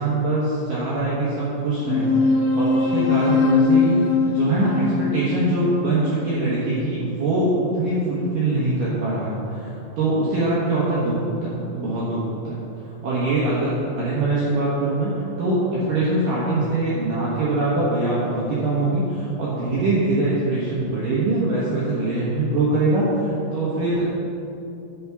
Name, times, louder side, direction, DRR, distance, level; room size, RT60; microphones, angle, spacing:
voice 1, 0.0-12.6 13.0-24.1, right 2 dB, 70° right, -8 dB, 2.1 m, -23 dB
sound 1, 1.8-6.8, left 4 dB, 75° left, 3.2 m, -21 dB
9.2 x 5.8 x 6.0 m, 2.7 s
omnidirectional pair, 5.7 m